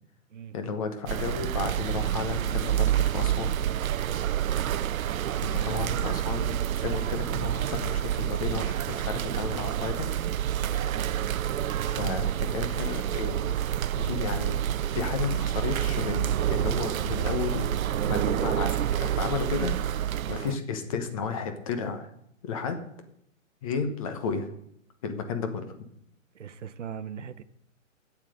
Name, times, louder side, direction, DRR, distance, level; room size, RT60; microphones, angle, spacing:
voice 1, 0.5-3.5 5.5-10.1 11.9-13.5 14.0-14.6 14.9-17.7 18.0-22.1 22.4-22.8 23.6-24.5 25.0-25.7, left 5 dB, 25° left, 1.1 m, -33 dB
sound 1, 1.1-20.6, right 11 dB, 85° right, 0.5 m, -28 dB
voice 2, 4.7-5.9 10.6-10.9 26.3-27.4, right 8 dB, 60° right, 0.9 m, -40 dB
8.9 x 7.5 x 7.8 m
hypercardioid pair, 155°, 40 cm